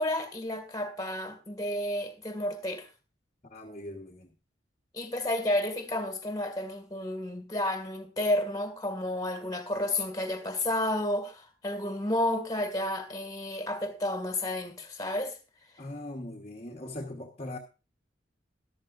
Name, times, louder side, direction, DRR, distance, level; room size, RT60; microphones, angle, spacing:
voice 1, 0.0-2.9 4.9-15.4, left 1 dB, 20° left, 2.0 m, -31 dB
voice 2, 3.4-4.3 15.8-17.6, left 1 dB, 35° left, 1.4 m, -40 dB
14.0 x 12.0 x 2.5 m
head